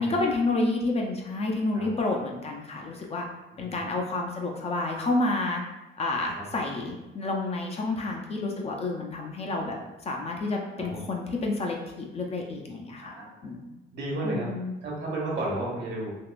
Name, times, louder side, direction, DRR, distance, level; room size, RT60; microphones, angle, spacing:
voice 1, 0.0-3.3 3.6-5.6 6.0-9.8 10.0-13.1 13.4-13.6 14.2-14.7, left 2 dB, 30° left, 1 dB, 0.5 m, -29 dB
voice 2, 13.0-13.5 13.9-14.5 14.8-16.1, right 1 dB, 65° right, -3 dB, 1.1 m, -33 dB
3.5 x 2.4 x 2.4 m, 1.0 s
cardioid pair, 120°, 20 cm